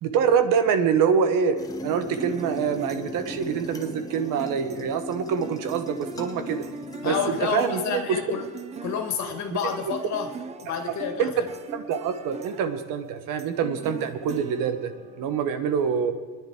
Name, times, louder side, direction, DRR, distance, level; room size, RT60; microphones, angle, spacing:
voice 1, 0.0-6.6 7.0-8.2 11.2-11.3 11.7-14.9 15.2-16.1, right 7 dB, 60° right, 9 dB, 1.1 m, -25 dB
sound 1, 1.6-7.6, left 2 dB, 10° left, 0.7 m, -38 dB
sound 2, 2.2-15.4, right 5 dB, 20° right, 0.4 m, -41 dB
voice 2, 7.0-8.5 8.8-10.3 10.6-11.3, left 6 dB, 50° left, 4 dB, 2.0 m, -29 dB
28.5 x 10.0 x 3.6 m, 1.5 s
cardioid pair, 170°, 36 cm